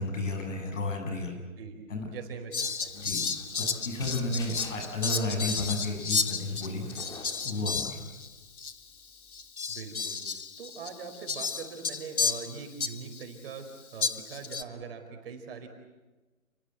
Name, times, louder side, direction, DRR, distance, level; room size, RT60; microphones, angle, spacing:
voice 1, 0.0-1.4 1.9-2.1 2.9-3.2 3.6-6.9 7.4-8.0, left 2 dB, 60° left, 4 dB, 7.8 m, -32 dB
voice 2, 2.1-3.1 9.7-10.2 10.6-15.7, right 5 dB, 40° right, 5 dB, 4.7 m, -42 dB
Fowl, 2.5-8.3 8.6-8.7 9.3-13.2 14.0-14.6, left 5 dB, 90° left, 1.7 m, -33 dB
sound 1, 2.6-9.5, left 3 dB, 10° left, 2.3 m, -50 dB
29.5 x 21.0 x 8.1 m, 1.2 s
hypercardioid pair, 150°, 42 cm